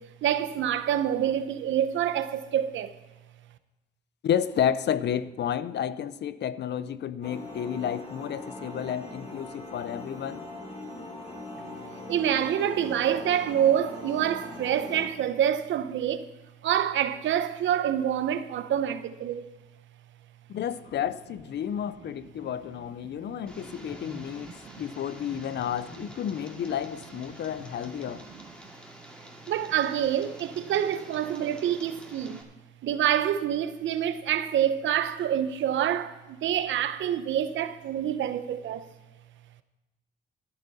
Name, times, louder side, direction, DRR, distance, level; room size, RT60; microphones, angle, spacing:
voice 1, 0.0-2.9 12.1-16.3 16.6-19.4 23.0-23.5 24.4-24.8 29.5-32.4 32.8-38.9, right 10 dB, 75° right, 0.9 m, -27 dB
voice 2, 4.2-10.4 20.5-28.3, left 9 dB, 60° left, 0.7 m, -31 dB
sound 1, 7.2-15.1, left 2 dB, 30° left, 3.9 m, -41 dB
Tick, 23.5-32.4, right 1 dB, 5° left, 2.5 m, -48 dB
13.5 x 11.0 x 4.2 m
cardioid pair, 90°, 20 cm